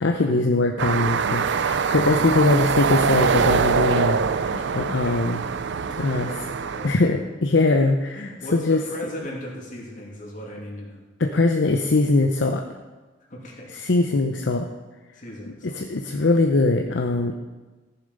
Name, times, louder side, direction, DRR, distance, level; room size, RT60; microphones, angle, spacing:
voice 1, 0.0-5.4 6.0-6.3 6.8-8.8 11.2-12.6 13.7-14.7 15.8-17.3, left 2 dB, 65° left, 3 dB, 0.7 m, -21 dB
sound 1, 0.8-6.9, right 5 dB, 65° right, 0.5 m, -23 dB
voice 2, 1.8-2.6 4.4-5.3 5.9-7.1 8.2-11.0 13.3-13.7 15.1-15.8, left 1 dB, 45° left, -2 dB, 2.7 m, -37 dB
14.5 x 7.1 x 5.4 m, 1.2 s
head